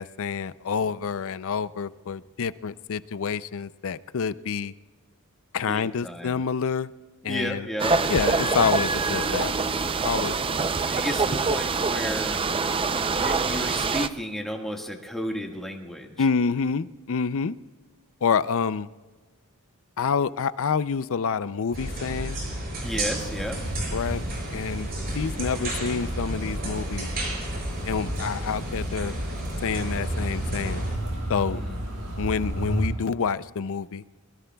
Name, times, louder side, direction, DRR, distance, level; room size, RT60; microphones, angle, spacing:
voice 1, 0.0-4.7 5.5-6.9 7.2-7.7 8.1-9.5 10.0-10.6 16.2-17.6 18.2-18.9 20.0-22.4 23.9-24.2 24.5-24.9 25.2-27.1 27.8-29.1 29.6-30.8 31.3-31.6 32.2-34.0, left 6 dB, 65° left, 16 dB, 0.5 m, -27 dB
voice 2, 5.7-6.4 7.2-8.0 10.9-12.4 13.1-16.1 22.8-23.6 31.5-31.8, equal, ahead, 1 dB, 1.6 m, -33 dB
sound 1, 7.8-14.1, right 4 dB, 25° right, 0.5 m, -25 dB
sound 2, 21.7-30.9, right 1 dB, 45° right, 6.4 m, -32 dB
sound 3, 23.2-32.9, right 1 dB, 85° right, 6.8 m, -33 dB
24.0 x 22.0 x 2.3 m, 1.3 s
head